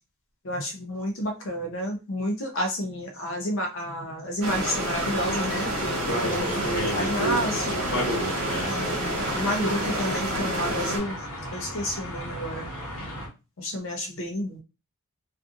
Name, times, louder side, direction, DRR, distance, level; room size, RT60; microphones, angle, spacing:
voice 1, 0.4-7.8 8.7-11.2 11.5-12.7 13.6-14.6, equal, 60° left, 3 dB, 0.6 m, -30 dB
sound 1, 4.4-11.0, right 1 dB, 65° right, 1.1 m, -29 dB
sound 2, 5.1-13.3, equal, 80° left, 1.1 m, -33 dB
2.5 x 2.5 x 2.5 m, 0.29 s
head